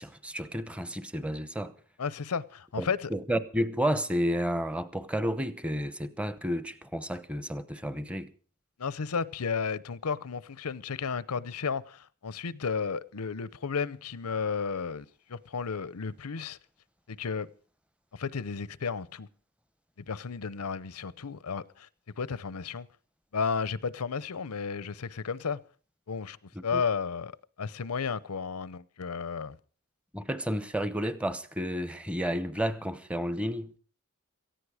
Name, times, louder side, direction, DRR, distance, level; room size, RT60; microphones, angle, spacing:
voice 1, 0.0-1.7 2.8-8.3 26.5-26.8 30.1-33.8, equal, 5° right, 0.9 m, -31 dB
voice 2, 2.0-3.1 8.8-16.6 17.1-17.5 18.1-19.3 20.1-21.9 22.2-22.9 23.3-25.6 26.1-26.4 26.6-27.3 27.6-29.6, left 5 dB, 85° left, 0.7 m, -33 dB
18.0 x 14.5 x 4.9 m
head